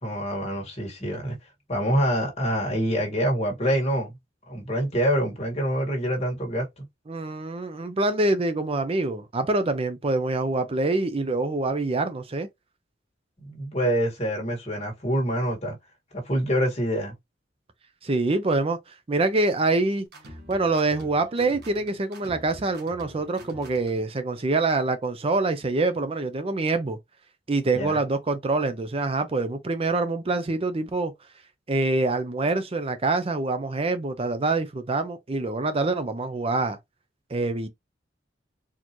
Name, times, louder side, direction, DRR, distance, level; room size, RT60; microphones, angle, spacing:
voice 1, 0.0-1.4 1.7-4.1 4.5-6.9 13.4-15.8 16.1-17.1 27.7-28.0, equal, 35° left, 1.8 m, -26 dB
voice 2, 7.1-12.5 18.0-20.1 20.5-27.0 27.5-31.1 31.7-36.8 37.3-37.7, right 2 dB, 30° right, 0.5 m, -25 dB
sound 1, 20.1-24.1, equal, 60° right, 1.3 m, -46 dB
4.3 x 2.8 x 3.0 m
head